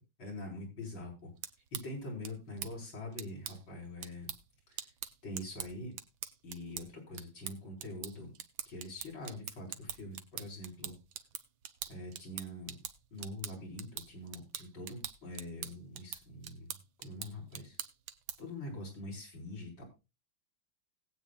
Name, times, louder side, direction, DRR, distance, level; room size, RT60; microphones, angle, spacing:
voice 1, 0.2-1.3 1.7-4.3 4.7-4.8 5.2-5.9 6.4-8.3 8.7-10.9 11.9-12.8 13.1-17.8 18.4-19.9, left 1 dB, 75° left, -1 dB, 5.5 m, -44 dB
sound 1, 1.2-18.6, right 10 dB, 80° right, 1.7 m, -45 dB
20.0 x 8.4 x 2.4 m, 0.27 s
omnidirectional pair, 2.1 m